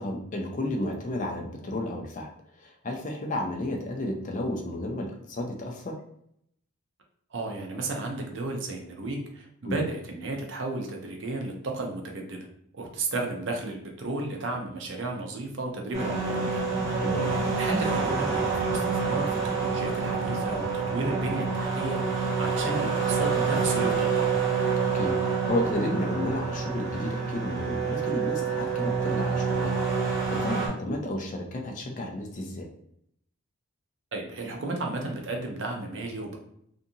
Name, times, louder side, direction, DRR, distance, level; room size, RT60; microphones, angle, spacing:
voice 1, 0.0-2.3 2.6-6.0 9.6-9.8 17.0-17.3 24.9-25.1 25.5-29.7 30.0-32.7, left 1 dB, 35° left, 1 dB, 0.4 m, -32 dB
voice 2, 7.3-12.5 12.7-16.6 17.2-24.3 34.1-36.4, right 2 dB, 60° right, 1 dB, 0.5 m, -33 dB
sound 1, 15.9-30.7, right 5 dB, 35° right, 0.9 m, -27 dB
2.6 x 2.4 x 2.7 m, 0.72 s
head